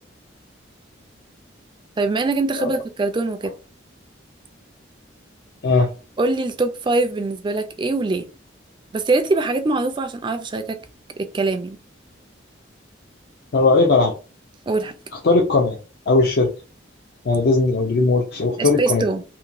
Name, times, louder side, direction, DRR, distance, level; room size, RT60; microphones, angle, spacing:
voice 1, 2.0-3.5 6.2-8.3 8.9-10.8 11.2-11.8 14.7-14.9 18.6-19.2, right 3 dB, 25° right, 0.3 m, -23 dB
voice 2, 13.5-14.1 15.2-15.8 16.1-16.5 17.3-19.1, left 3 dB, 55° left, 0.4 m, -18 dB
2.9 x 2.2 x 2.5 m
head